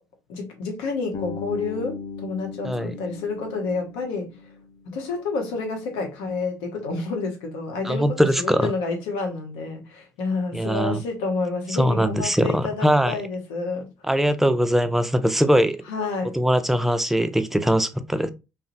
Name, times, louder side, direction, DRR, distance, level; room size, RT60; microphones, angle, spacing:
voice 1, 0.3-4.3 4.9-13.9 15.9-16.4, left 3 dB, 75° left, 0.8 m, -29 dB
Bass guitar, 1.1-5.1, left 5 dB, 50° left, 0.6 m, -37 dB
voice 2, 7.8-8.7 10.5-11.0 11.8-13.2 14.1-15.8 16.3-18.3, equal, 5° right, 0.4 m, -21 dB
2.8 x 2.1 x 2.5 m
hypercardioid pair, 55°, 9 cm